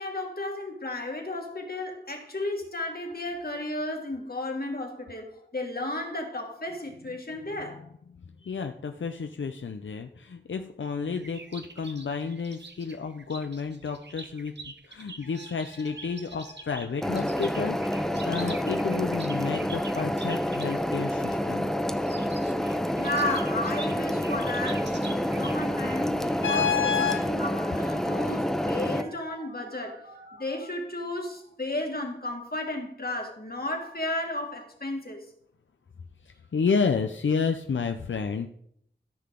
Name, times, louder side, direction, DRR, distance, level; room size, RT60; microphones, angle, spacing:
voice 1, 0.0-7.8 23.0-35.3, left 1 dB, 55° left, 1.9 m, -33 dB
voice 2, 8.1-21.7 23.3-23.4 26.4-27.4 33.0-33.1 36.2-38.5, left 5 dB, 85° left, 0.5 m, -30 dB
sound 1, 11.1-20.8 21.9-26.5, right 3 dB, 65° right, 1.0 m, -45 dB
sound 2, 17.0-29.0, equal, ahead, 0.7 m, -28 dB
Telephone, 24.9-30.7, right 1 dB, 85° right, 3.7 m, -50 dB
13.5 x 5.8 x 3.7 m
wide cardioid pair, 40°, 19 cm